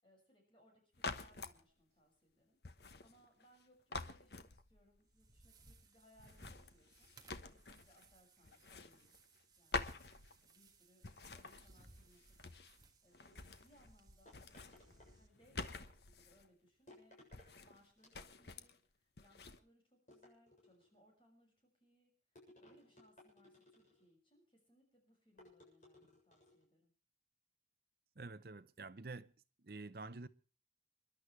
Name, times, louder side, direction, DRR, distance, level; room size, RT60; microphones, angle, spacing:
voice 1, 0.0-9.1 9.6-12.5 13.0-17.2 17.6-26.9, equal, 30° left, 6.2 m, -70 dB
sound 1, 0.9-1.6 2.6-3.6 3.9-5.0 6.2-8.1 8.4-9.4 9.7-10.7 11.0-12.8 13.1-14.0 14.3-16.5 17.3-17.8 18.1-18.8 19.2-19.6, left 3 dB, 70° left, 1.1 m, -48 dB
sound 2, 5.0-15.3, right 2 dB, 20° right, 1.6 m, -64 dB
sound 3, 14.3-15.6 16.9-17.5 18.0-18.7 20.1-21.0 22.4-24.1 25.4-26.7, left 1 dB, 45° left, 7.4 m, -63 dB
voice 2, 28.2-29.3 29.6-30.3, right 3 dB, 55° right, 0.7 m, -48 dB
29.0 x 11.5 x 3.3 m
head